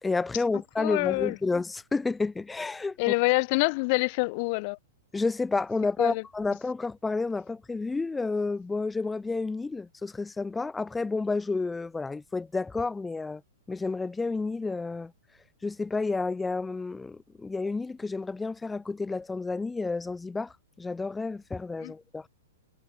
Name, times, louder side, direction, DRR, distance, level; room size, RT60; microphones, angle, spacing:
voice 1, 0.0-3.0 5.1-13.4 13.7-15.1 15.6-22.3, left 3 dB, 10° left, 3.4 m, -30 dB
voice 2, 0.8-1.4 3.0-4.8 6.0-6.2 21.8-21.9, left 30 dB, 45° left, 3.1 m, -26 dB
hypercardioid pair, 145°, 0 cm